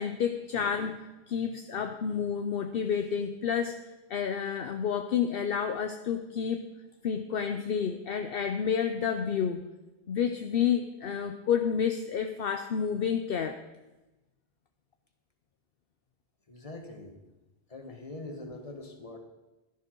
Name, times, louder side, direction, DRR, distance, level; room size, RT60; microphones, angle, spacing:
voice 1, 0.0-3.8 4.1-6.7 7.0-9.6 10.1-13.6, left 7 dB, 65° left, 7 dB, 0.9 m, -30 dB
voice 2, 16.5-17.2 17.7-19.2, left 2 dB, 30° left, 4 dB, 1.6 m, -43 dB
12.5 x 11.0 x 4.5 m, 1.1 s
omnidirectional pair, 1.1 m